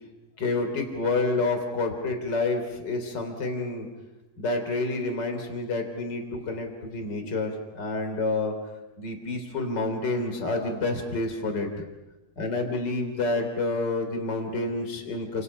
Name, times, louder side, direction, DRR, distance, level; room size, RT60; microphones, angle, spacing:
voice 1, 0.4-3.9 4.4-8.5 9.0-11.7 12.4-15.4, left 2 dB, 35° left, 5 dB, 4.0 m, -28 dB
30.0 x 27.0 x 5.6 m, 1.0 s
omnidirectional pair, 3.3 m